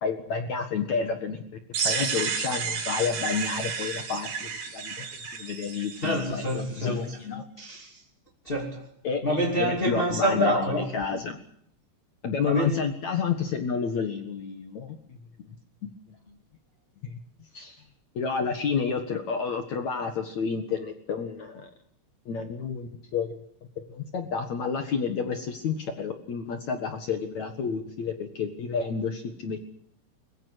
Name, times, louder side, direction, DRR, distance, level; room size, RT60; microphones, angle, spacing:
voice 1, 0.0-1.4 1.8-5.1 5.3-7.4 9.0-9.2 9.6-11.4 12.2-15.0 15.8-15.9 17.0-17.2 17.5-17.8 18.2-21.7 22.3-23.4 23.9-29.6, left 5 dB, 65° left, 1.8 m, -30 dB
sound 1, 1.7-6.6, right 6 dB, 55° right, 5.1 m, -32 dB
voice 2, 6.0-7.2 7.6-8.0 8.4-8.9 9.2-10.9 12.4-12.8, equal, 25° left, 1.3 m, -27 dB
23.5 x 21.5 x 8.2 m
omnidirectional pair, 5.8 m